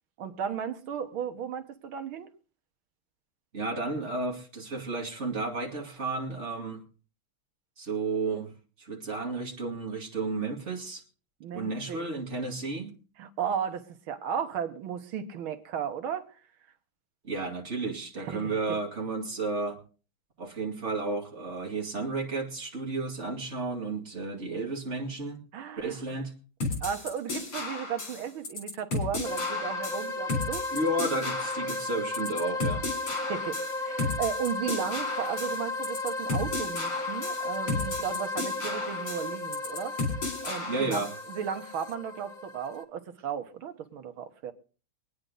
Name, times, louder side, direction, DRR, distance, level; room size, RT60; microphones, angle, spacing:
voice 1, 0.2-2.3 11.4-12.0 13.2-16.3 18.2-18.6 25.5-26.0 26.8-30.7 33.3-40.0 40.4-44.5, right 8 dB, 75° right, 1.9 m, -35 dB
voice 2, 3.5-6.8 7.8-8.5 8.8-11.0 11.5-13.0 17.2-19.8 20.4-25.4 25.7-26.3 30.7-32.9 40.7-41.1, right 3 dB, 35° right, 2.6 m, -32 dB
sound 1, 26.6-41.2, left 3 dB, 85° left, 4.5 m, -34 dB
sound 2, 29.2-42.8, left 2 dB, 55° left, 0.5 m, -34 dB
23.5 x 9.6 x 3.9 m
omnidirectional pair, 2.3 m